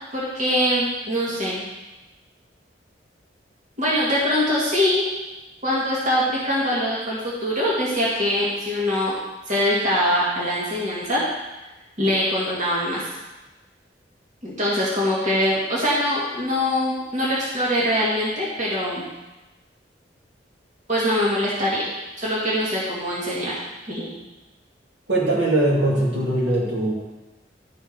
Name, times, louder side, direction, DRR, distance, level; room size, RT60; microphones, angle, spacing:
voice 1, 0.1-1.6 3.8-5.0 5.6-9.1 9.5-11.2 12.0-13.1 14.4-19.0 20.9-21.9 22.2-23.5 23.9-24.1, equal, 40° right, -7 dB, 2.1 m, -23 dB
voice 2, 25.1-26.9, right 1 dB, 75° right, -5 dB, 2.7 m, -21 dB
11.5 x 4.6 x 5.2 m, 1.1 s
head